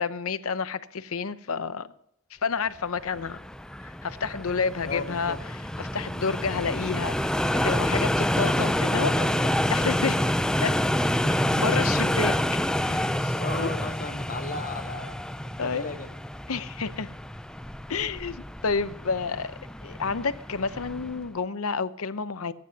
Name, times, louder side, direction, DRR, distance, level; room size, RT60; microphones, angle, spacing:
voice 1, 0.0-1.9 2.3-3.4 3.8-5.4 5.8-9.1 9.7-10.2 10.6-10.7 11.5-12.3 12.8-13.7 15.6-15.9 16.5-17.1 17.9-19.5 19.8-22.5, left 5 dB, 75° left, 13 dB, 0.7 m, -30 dB
sound 1, 3.0-21.3, left 1 dB, 5° left, 0.4 m, -28 dB
voice 2, 4.8-5.4 8.5-9.7 13.4-15.3 15.6-16.1, left 3 dB, 40° left, 6 dB, 0.9 m, -36 dB
26.0 x 9.4 x 2.8 m, 0.78 s
head